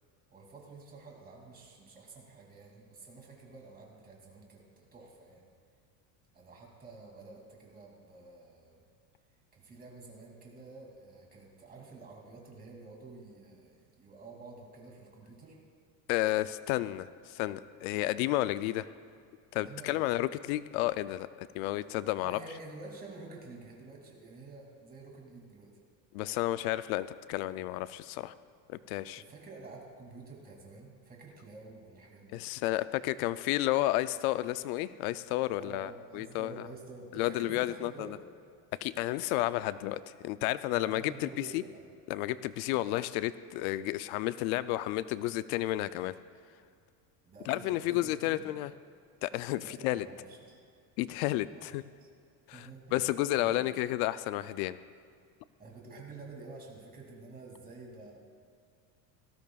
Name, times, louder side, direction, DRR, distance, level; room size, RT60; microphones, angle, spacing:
voice 1, 0.3-5.5 6.3-8.8 9.5-15.6 19.5-20.1 22.2-25.7 29.2-32.4 35.6-38.2 40.7-41.9 42.7-42.9 47.2-48.5 49.6-50.6 51.5-51.7 52.0-52.1 52.5-53.6 55.6-58.1, right 3 dB, 20° right, -1 dB, 2.5 m, -49 dB
voice 2, 16.1-18.9 19.5-22.4 26.1-28.3 28.7-29.2 32.3-36.6 37.1-38.1 38.8-41.6 42.1-46.1 47.5-48.7 49.2-50.0 51.0-51.8 52.5-54.8, left 16 dB, 80° left, 14 dB, 0.5 m, -32 dB
18.5 x 15.0 x 2.3 m, 2.3 s
cardioid pair, 155°, 43 cm